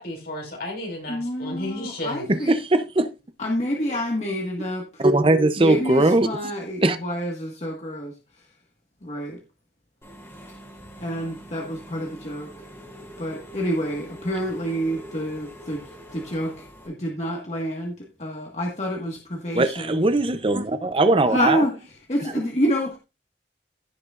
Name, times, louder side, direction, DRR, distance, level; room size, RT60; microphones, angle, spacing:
voice 1, 0.0-2.3, left 1 dB, 55° left, 4.7 m, -33 dB
voice 2, 1.1-2.5 3.4-4.8 5.6-8.1 9.0-9.4 11.0-12.5 13.2-15.8 16.1-16.5 16.9-17.9 18.2-20.0 21.3-21.7 22.1-23.0, equal, 40° left, 1.6 m, -27 dB
voice 3, 2.3-3.1 3.9-4.0 5.0-6.5 6.8-7.0 19.5-21.7 22.2-22.5, right 2 dB, 30° right, 0.6 m, -20 dB
Engine / Mechanisms, 10.0-16.9, equal, 15° left, 3.3 m, -43 dB
16.5 x 6.1 x 2.5 m
head